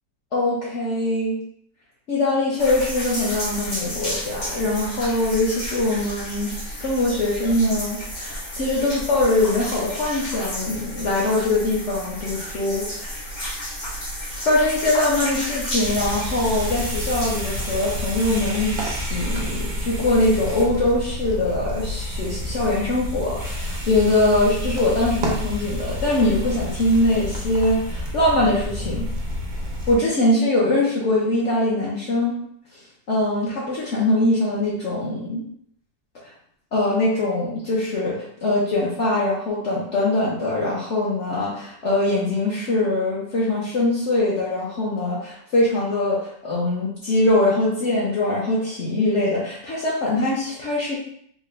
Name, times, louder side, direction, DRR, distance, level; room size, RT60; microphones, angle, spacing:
voice 1, 0.3-1.4 2.1-6.5 6.8-13.2 14.4-29.0 29.9-32.3 33.1-35.4 36.7-51.0, left 2 dB, 55° left, -6 dB, 0.9 m, -22 dB
sound 1, 2.6-19.0, equal, 75° left, 1.7 m, -32 dB
sound 2, 15.8-30.0, left 1 dB, 60° right, 0.5 m, -29 dB
3.6 x 2.2 x 3.1 m, 0.66 s
omnidirectional pair, 1.6 m